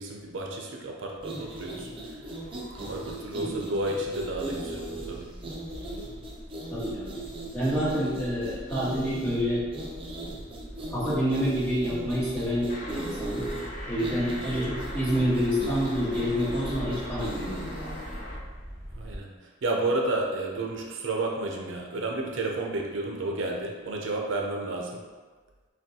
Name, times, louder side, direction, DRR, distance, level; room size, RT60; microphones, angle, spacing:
voice 1, 0.0-2.2 2.7-5.3 18.9-25.1, right 2 dB, 70° right, 0 dB, 0.5 m, -31 dB
sound 1, 1.2-18.2, right 2 dB, 25° right, 0.5 m, -39 dB
sound 2, 1.4-19.2, equal, 10° right, 1.1 m, -42 dB
voice 2, 3.4-3.7 6.7-7.2 7.5-9.6 10.9-13.4 13.9-17.9, equal, 10° left, -10 dB, 1.3 m, -28 dB
sound 3, 12.7-18.4, left 1 dB, 40° left, 0.6 m, -42 dB
5.9 x 2.3 x 2.8 m, 1.4 s
head